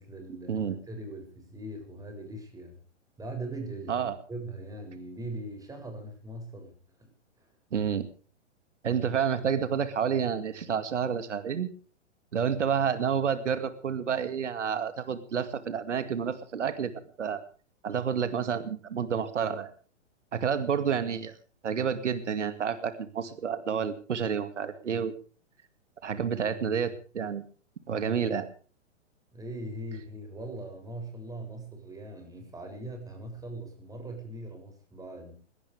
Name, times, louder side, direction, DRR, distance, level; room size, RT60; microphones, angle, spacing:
voice 1, 0.0-0.6 0.9-2.8 3.2-6.7 7.0-7.1 7.4-7.5 29.3-35.3, right 1 dB, 10° right, 4 dB, 7.5 m, -40 dB
voice 2, 7.7-8.1 8.8-11.7 12.3-16.9 17.2-17.4 17.8-19.7 20.3-21.3 21.6-25.1 26.0-27.4 27.9-28.5, right 7 dB, 75° right, 11 dB, 2.4 m, -29 dB
21.5 x 18.0 x 3.5 m, 0.40 s
hypercardioid pair, 120°, 36 cm